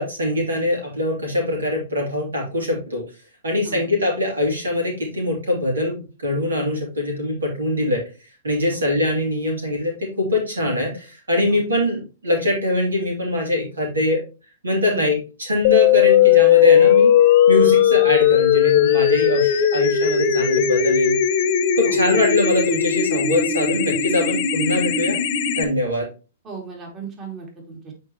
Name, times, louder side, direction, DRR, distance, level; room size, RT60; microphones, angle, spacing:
voice 1, 0.0-3.0 3.4-8.0 8.4-14.2 14.6-17.1 17.5-21.2 21.8-25.2 25.6-26.1, left 2 dB, 90° right, 0 dB, 3.0 m, -22 dB
sound 1, 15.6-25.6, left 9 dB, 50° left, 0.9 m, -17 dB
voice 2, 21.8-22.3 26.4-27.9, right 5 dB, 30° right, 0 dB, 2.7 m, -36 dB
8.7 x 4.5 x 3.1 m, 0.33 s
hypercardioid pair, 115°, 0 cm